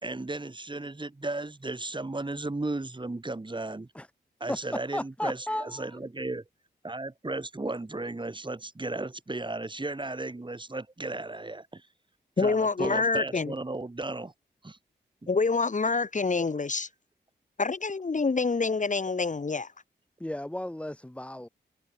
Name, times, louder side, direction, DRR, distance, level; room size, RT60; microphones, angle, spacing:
voice 1, 0.0-3.9 4.4-6.4 6.8-11.9 12.4-14.3 14.6-14.8 15.2-15.3, right 2 dB, 25° right, 2.0 m, -35 dB
voice 2, 4.9-5.9 20.2-21.5, left 1 dB, 5° left, 0.7 m, -34 dB
voice 3, 12.4-13.5 15.3-16.9 17.6-19.7, left 4 dB, 40° left, 1.3 m, -26 dB
cardioid pair, 45°, 19 cm